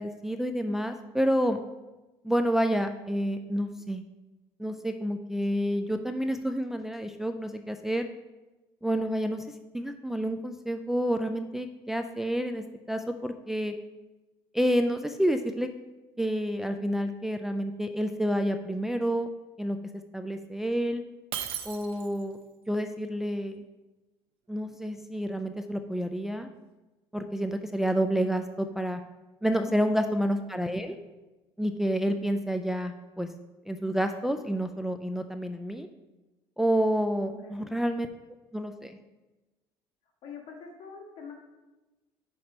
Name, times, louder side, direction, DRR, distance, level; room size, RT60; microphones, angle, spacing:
voice 1, 0.0-1.6 2.2-4.0 4.6-8.0 8.8-9.4 9.7-13.7 14.5-15.7 16.2-19.3 19.6-19.8 20.1-21.0 21.7-22.4 22.7-23.6 24.5-26.5 27.1-29.0 29.4-31.0 31.6-33.3 33.7-35.9 36.6-38.1 38.5-39.0, equal, 5° right, 6 dB, 0.3 m, -29 dB
Shatter, 21.3-22.3, right 10 dB, 65° right, 0.6 m, -36 dB
voice 2, 29.6-30.1 37.2-37.7 40.2-41.3, left 5 dB, 65° left, 1 dB, 1.5 m, -45 dB
5.8 x 4.3 x 5.3 m, 1.1 s
cardioid pair, 120°, 10 cm